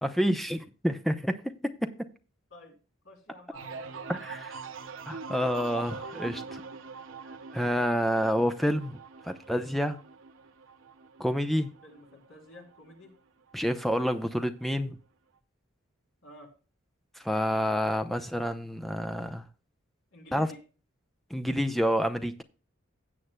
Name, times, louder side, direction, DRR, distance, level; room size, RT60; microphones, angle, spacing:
voice 1, 0.0-1.4 1.8-1.9 4.1-4.5 5.1-6.6 7.5-9.0 9.2-10.0 11.2-11.7 13.5-15.0 17.2-19.4 20.3-20.5 21.3-22.4, equal, ahead, 7 dB, 0.6 m, -28 dB
voice 2, 3.0-4.1 11.8-13.2 16.2-16.5 20.1-20.6, left 1 dB, 75° left, -1 dB, 3.4 m, -51 dB
sound 1, 3.5-13.1 13.5-14.0, right 5 dB, 80° right, 0.8 m, -43 dB
16.5 x 7.6 x 2.2 m, 0.35 s
head